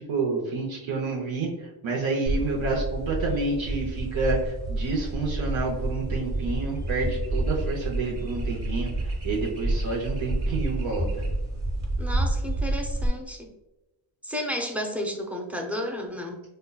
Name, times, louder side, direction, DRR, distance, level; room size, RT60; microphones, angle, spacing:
voice 1, 0.0-11.1, right 3 dB, 80° right, -1 dB, 0.8 m, -29 dB
sound 1, 2.3-13.1, right 2 dB, 35° right, 1.0 m, -29 dB
voice 2, 12.0-13.5 14.2-16.4, equal, 5° right, 1 dB, 0.5 m, -32 dB
5.1 x 2.2 x 2.2 m, 1.0 s
wide cardioid pair, 110°, 46 cm